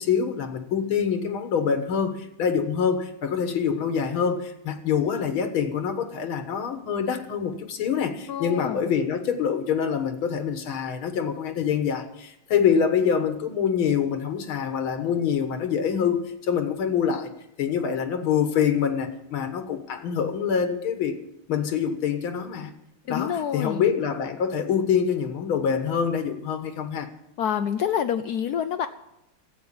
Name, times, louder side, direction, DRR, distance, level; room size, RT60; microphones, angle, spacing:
voice 1, 0.0-17.3 17.6-21.2 21.5-22.7 23.1-27.1, left 7 dB, 85° left, 8 dB, 2.2 m, -25 dB
voice 2, 8.3-8.9 23.1-23.8 27.4-28.9, left 8 dB, 70° left, 9 dB, 0.9 m, -27 dB
12.5 x 8.5 x 8.6 m, 0.86 s
omnidirectional pair, 2.2 m